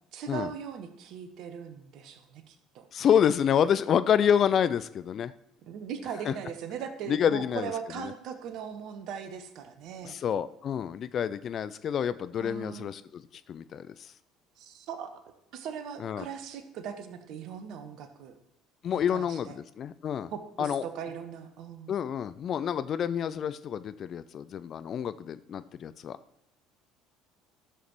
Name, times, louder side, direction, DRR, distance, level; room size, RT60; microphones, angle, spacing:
voice 1, 0.1-2.9 5.6-10.2 12.4-12.9 14.6-15.2 15.5-18.3 19.1-19.6 20.3-21.9, right 7 dB, 55° right, 9 dB, 1.0 m, -39 dB
voice 2, 2.9-5.3 6.3-6.4 7.1-8.1 10.0-13.2 13.5-14.1 16.0-16.3 18.8-20.3 20.6-20.8 21.9-26.2, left 8 dB, 45° left, 14 dB, 0.4 m, -28 dB
14.5 x 7.1 x 3.0 m, 0.83 s
figure-of-eight pair, 55°, 0 cm